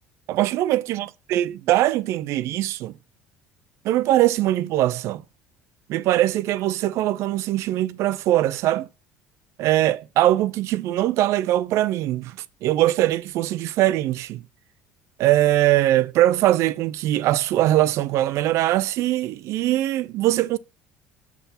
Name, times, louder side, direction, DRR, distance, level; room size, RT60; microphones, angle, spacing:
voice 1, 0.3-1.1 1.3-2.9 3.8-5.2 5.9-8.9 9.6-14.4 15.2-20.6, right 14 dB, 65° right, 0.5 m, -21 dB
7.0 x 3.5 x 5.6 m
hypercardioid pair, 75°, 5 cm